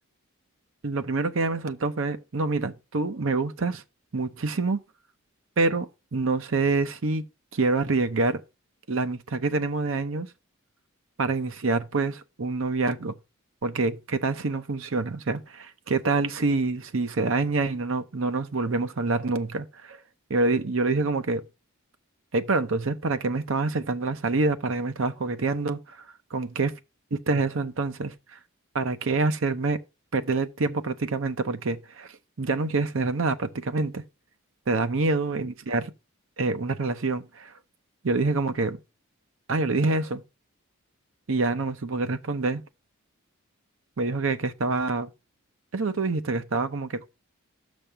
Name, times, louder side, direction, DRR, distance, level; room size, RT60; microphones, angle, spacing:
voice 1, 0.8-3.8 4.1-4.8 5.6-7.2 7.5-8.4 8.9-10.3 11.2-13.2 13.6-20.0 20.3-21.4 22.3-26.0 26.3-26.7 27.1-28.1 28.7-29.8 30.1-32.1 32.4-34.0 34.7-35.9 36.4-37.5 38.0-38.8 39.5-40.2 41.3-42.6 44.0-45.1 45.7-47.1, right 3 dB, 65° right, 0.7 m, -26 dB
6.2 x 5.2 x 5.6 m
head